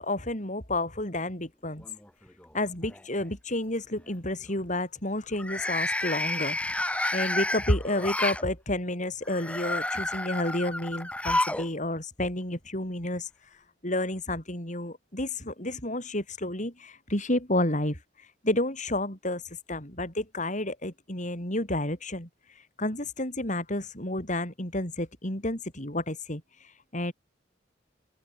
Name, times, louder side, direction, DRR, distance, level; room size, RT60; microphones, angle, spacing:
voice 1, 0.0-1.9 2.5-27.1, left 1 dB, 40° left, 7.0 m, -31 dB
sound 1, 1.8-2.4 2.8-3.2 5.3-8.4 9.2-11.7 12.0-12.1 13.2-13.3, left 1 dB, 5° left, 2.4 m, -30 dB
open air
head